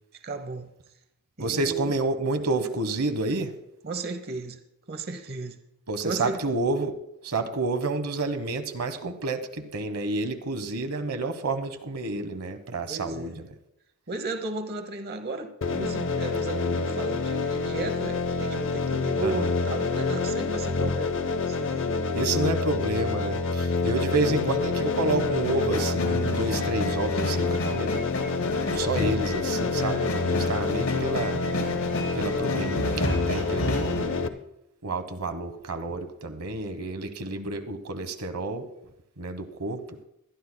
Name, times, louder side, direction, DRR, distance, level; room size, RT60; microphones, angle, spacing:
voice 1, 0.2-0.7 1.4-1.9 3.8-4.6 4.9-5.5 6.0-6.4 12.8-13.4 14.1-22.1 23.8-24.4, right 3 dB, 45° right, 9 dB, 0.8 m, -35 dB
voice 2, 1.4-3.5 5.9-7.0 7.2-13.3 19.2-19.5 22.1-27.9 28.7-31.4 32.1-34.3 34.8-38.6 39.2-40.0, right 2 dB, 85° right, 8 dB, 1.0 m, -29 dB
sound 1, 15.6-34.3, left 4 dB, 60° left, 0.7 m, -27 dB
sound 2, 25.2-34.0, left 1 dB, 75° left, 4.0 m, -33 dB
22.0 x 11.5 x 2.2 m, 0.82 s
head